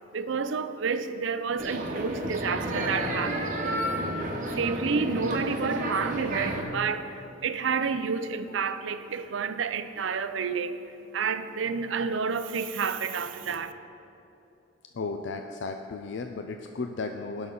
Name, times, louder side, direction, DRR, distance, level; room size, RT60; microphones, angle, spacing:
voice 1, 0.1-3.6 4.5-13.7, right 5 dB, 75° right, 11 dB, 0.5 m, -30 dB
sound 1, 1.6-6.6, right 1 dB, 45° right, 1.2 m, -31 dB
voice 2, 14.9-17.5, left 4 dB, 70° left, 5 dB, 0.5 m, -34 dB
18.0 x 6.1 x 3.9 m, 2.9 s
head